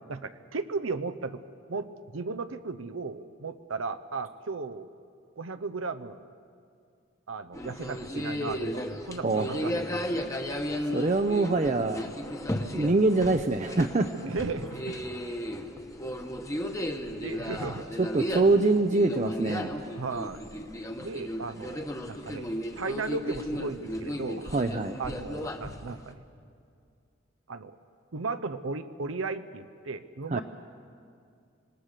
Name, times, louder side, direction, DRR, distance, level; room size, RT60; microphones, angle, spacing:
voice 1, 0.0-1.4 1.7-4.9 5.4-6.3 7.3-10.0 12.5-12.7 14.2-15.0 16.6-16.9 17.2-17.9 20.0-20.4 21.0-24.5 25.0-26.2 27.5-27.8 28.1-30.4, right 4 dB, 90° right, 11 dB, 0.8 m, -36 dB
sound 1, 7.5-26.1, equal, 15° left, 1.1 m, -35 dB
voice 2, 10.9-12.0 12.7-14.1 18.0-19.7 24.5-25.0 30.3-30.4, right 3 dB, 35° right, 6 dB, 0.6 m, -24 dB
26.0 x 19.0 x 6.7 m, 2.3 s
head